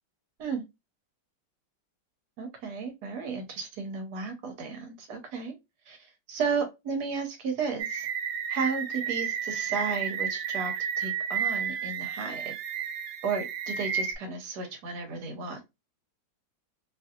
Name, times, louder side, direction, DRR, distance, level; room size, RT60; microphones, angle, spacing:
voice 1, 2.4-5.5 5.9-8.1 8.5-12.5 13.2-15.7, right 5 dB, 70° right, 5 dB, 1.3 m, -33 dB
sound 1, 7.8-14.2, right 7 dB, 85° right, 1.3 m, -32 dB
3.0 x 2.6 x 2.3 m, 0.22 s
omnidirectional pair, 1.9 m